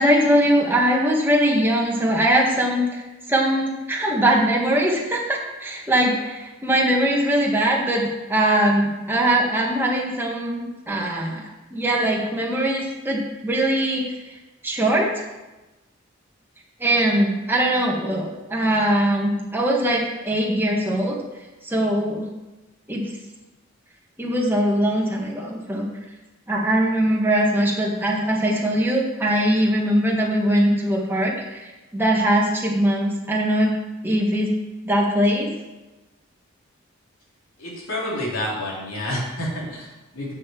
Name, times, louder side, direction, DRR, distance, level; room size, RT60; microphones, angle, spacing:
voice 1, 0.0-3.0 3.3-14.1 14.6-15.1 16.8-21.2 21.6-22.2 22.9-23.0 24.2-25.9 26.5-33.7 34.0-34.5 34.8-35.5, right 1 dB, 10° right, -2 dB, 1.7 m, -21 dB
voice 2, 37.6-40.3, left 1 dB, 80° left, -5 dB, 3.6 m, -29 dB
7.6 x 6.1 x 7.3 m, 1.1 s
head